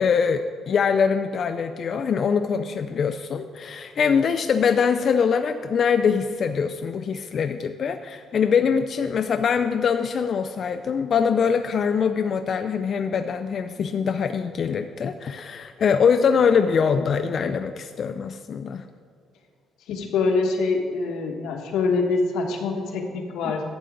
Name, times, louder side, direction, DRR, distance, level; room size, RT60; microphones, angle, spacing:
voice 1, 0.0-18.8, left 6 dB, 35° left, 7 dB, 0.3 m, -23 dB
voice 2, 19.9-23.6, left 4 dB, 80° left, 1 dB, 1.5 m, -24 dB
11.5 x 8.1 x 3.8 m, 2.4 s
cardioid pair, 175°, 0 cm